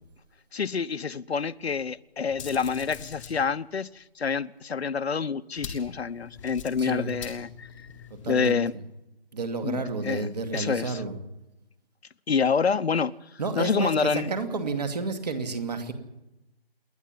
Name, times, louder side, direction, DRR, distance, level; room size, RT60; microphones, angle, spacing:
voice 1, 0.5-7.7 8.3-8.7 9.6-10.3 10.5-11.0 12.3-13.1 13.5-14.3, left 6 dB, 85° left, 0.9 m, -27 dB
sound 1, 2.3-3.4 5.6-8.5, left 6 dB, 5° left, 1.2 m, -43 dB
voice 2, 6.8-7.1 8.1-8.8 9.3-11.2 13.4-15.9, right 4 dB, 40° right, 2.6 m, -31 dB
28.0 x 11.0 x 9.3 m
hypercardioid pair, 170°, 31 cm